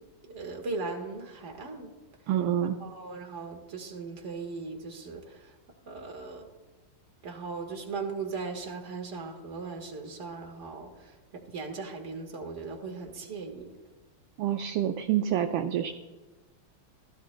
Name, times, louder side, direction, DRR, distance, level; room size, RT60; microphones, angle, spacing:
voice 1, 0.2-1.9 2.8-5.6 5.8-6.5 7.2-13.7, right 4 dB, 35° right, 2 dB, 1.6 m, -38 dB
voice 2, 2.3-2.8 14.4-15.9, right 10 dB, 75° right, 6 dB, 1.2 m, -27 dB
16.0 x 13.5 x 2.2 m, 1.2 s
omnidirectional pair, 2.4 m